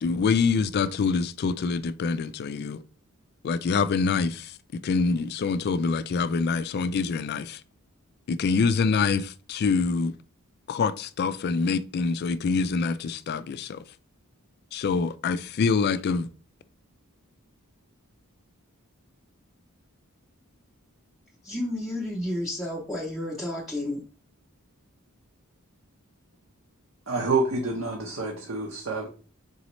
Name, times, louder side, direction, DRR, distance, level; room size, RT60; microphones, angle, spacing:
voice 1, 0.0-2.8 3.4-7.6 8.3-10.1 10.7-13.8 14.7-16.3, left 4 dB, 45° left, 0.3 m, -25 dB
voice 2, 21.4-24.0, left 1 dB, ahead, 0.7 m, -31 dB
voice 3, 27.1-29.1, right 3 dB, 60° right, 0.8 m, -27 dB
4.1 x 3.9 x 3.1 m
head